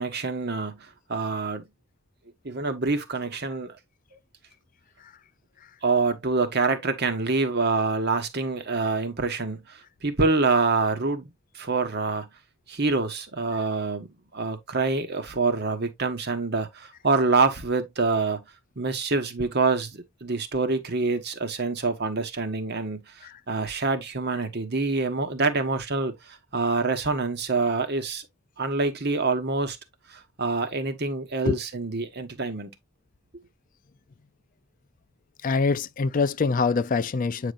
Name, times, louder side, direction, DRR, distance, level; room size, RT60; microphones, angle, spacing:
voice 1, 0.0-1.7 2.4-3.8 5.8-12.3 12.7-18.4 18.8-28.2 28.6-29.8 30.1-32.7, right 3 dB, 45° right, 1.3 m, -26 dB
voice 2, 35.4-37.5, left 4 dB, 35° left, 0.4 m, -24 dB
8.8 x 5.1 x 2.5 m
head